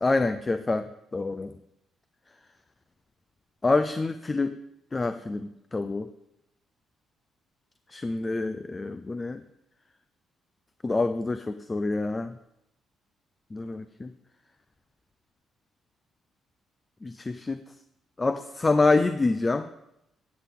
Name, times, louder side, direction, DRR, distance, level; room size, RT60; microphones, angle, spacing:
voice 1, 0.0-1.5 3.6-4.6 4.9-6.1 7.9-9.4 10.8-12.3 13.5-14.1 17.0-17.6 18.2-19.7, left 3 dB, 25° left, 10 dB, 0.5 m, -26 dB
13.0 x 8.3 x 3.7 m, 0.85 s
cardioid pair, 90°, 0 cm